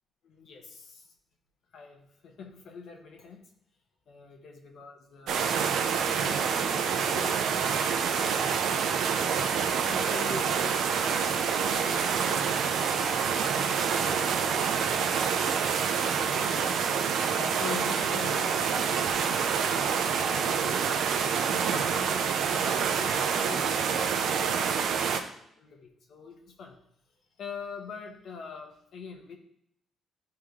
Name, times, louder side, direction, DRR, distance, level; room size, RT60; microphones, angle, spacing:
voice 1, 0.2-1.1 1.7-3.4 4.1-7.4 7.7-8.5 9.7-20.8 21.5-23.9 24.5-25.2 25.6-26.8 27.4-29.4, left 5 dB, 70° left, 2 dB, 1.3 m, -45 dB
sound 1, 5.3-25.2, right 6 dB, 75° right, 0.6 m, -27 dB
10.5 x 3.7 x 3.2 m, 0.73 s
cardioid pair, 90°, 0 cm